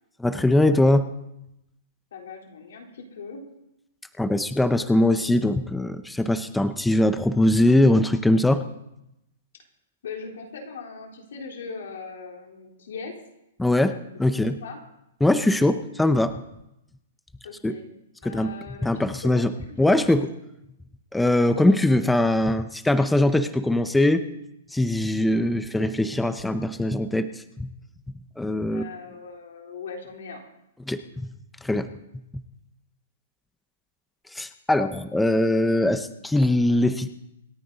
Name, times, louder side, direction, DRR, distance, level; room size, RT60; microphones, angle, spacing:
voice 1, 0.2-1.1 4.2-8.6 13.6-13.9 14.2-14.6 15.2-16.3 17.6-17.7 18.2-18.5 18.8-19.5 19.8-20.3 21.1-24.2 24.7-27.3 27.6-27.7 28.4-28.8 30.9-31.3 31.6-31.9 34.3-37.1, left 1 dB, 5° left, 10 dB, 0.5 m, -21 dB
voice 2, 2.1-3.4 10.0-13.1 14.2-14.8 17.4-17.8 18.2-18.9 19.2-20.2 28.7-30.4, left 5 dB, 75° left, 1 dB, 3.7 m, -39 dB
26.5 x 9.9 x 4.0 m, 0.85 s
hypercardioid pair, 165°, 0 cm